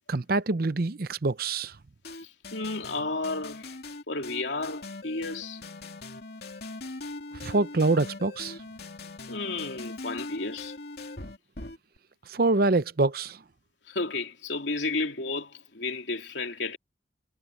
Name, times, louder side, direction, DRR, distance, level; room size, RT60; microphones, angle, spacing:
voice 1, 0.1-1.8 7.3-8.6 12.3-13.4, right 3 dB, 55° right, 0.8 m, -25 dB
sound 1, 2.0-12.0, left 2 dB, 60° left, 2.8 m, -41 dB
voice 2, 2.1-3.7 4.1-5.6 9.3-10.8 13.9-16.8, left 3 dB, 85° left, 3.0 m, -32 dB
head